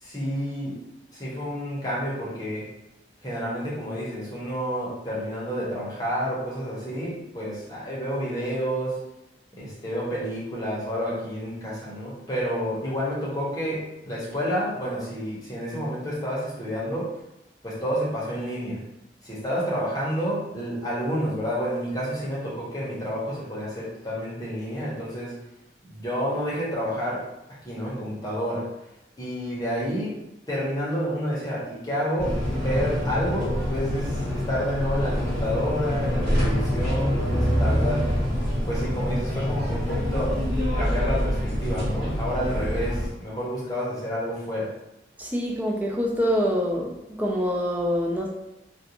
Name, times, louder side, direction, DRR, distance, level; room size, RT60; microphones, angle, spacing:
voice 1, 0.0-0.8 1.1-2.7 3.2-9.0 9.6-17.1 17.6-18.8 19.2-25.4 25.9-27.3 27.6-28.7 29.2-30.2 30.5-38.0 38.7-40.4 40.8-44.7, equal, 20° left, -7 dB, 0.8 m, -29 dB
sound 1, 32.2-43.1, equal, 65° right, 1.0 m, -26 dB
voice 2, 45.2-46.9 47.2-48.3, equal, 10° right, -2 dB, 0.3 m, -25 dB
2.4 x 2.2 x 2.8 m, 0.91 s
head